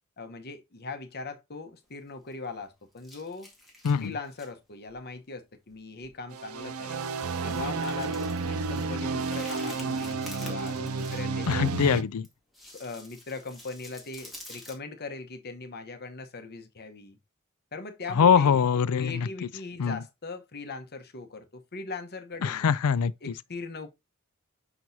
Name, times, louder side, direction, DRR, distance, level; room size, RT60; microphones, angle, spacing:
voice 1, 0.2-3.5 4.0-7.0 7.4-11.7 12.7-17.2 17.7-18.6 19.0-22.7 23.2-23.9, left 3 dB, 45° left, 1.0 m, -40 dB
sound 1, 1.9-2.6 3.0-4.5 4.9-5.1 5.7-5.8 6.0-6.2 6.6-6.7 7.3-11.7 12.2-14.7, left 1 dB, ahead, 2.0 m, -49 dB
sound 2, 6.3-12.0, right 4 dB, 75° right, 0.6 m, -31 dB
voice 2, 11.5-12.3 18.2-19.1 19.8-20.0 22.4-23.1, left 7 dB, 80° left, 0.4 m, -22 dB
6.1 x 5.9 x 2.7 m
head